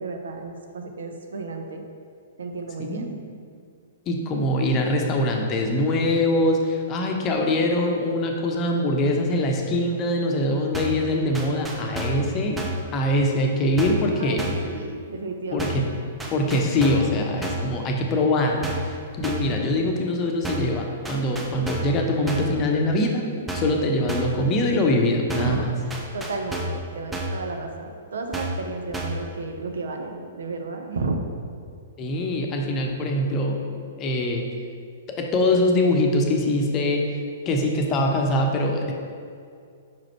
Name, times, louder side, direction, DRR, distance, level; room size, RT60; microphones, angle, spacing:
voice 1, 0.0-1.8 2.4-3.1 14.2-15.8 25.4-31.2, right 3 dB, 65° right, 4 dB, 0.7 m, -32 dB
voice 2, 2.8-3.2 4.1-12.6 12.9-14.7 15.5-15.9 16.3-23.3 23.5-25.7 32.0-33.6 34.0-34.5 35.1-37.1 37.5-38.9, left 1 dB, 30° left, 1 dB, 0.8 m, -23 dB
sound 1, 10.7-11.1 11.3-12.3 12.6-12.9 13.8-14.1 14.4-14.7 15.6-15.9 16.2-17.1 17.4-17.7 18.6-18.9 19.2-19.6 20.4-20.8 21.0-22.0 22.3-22.6 23.5-23.8 24.1-24.4 25.3-25.6 25.9-26.8 27.1-27.4 28.3-28.7 28.9-29.3, right 1 dB, 10° right, 0.7 m, -30 dB
5.5 x 5.0 x 4.4 m, 2.3 s
figure-of-eight pair, 110°, 0 cm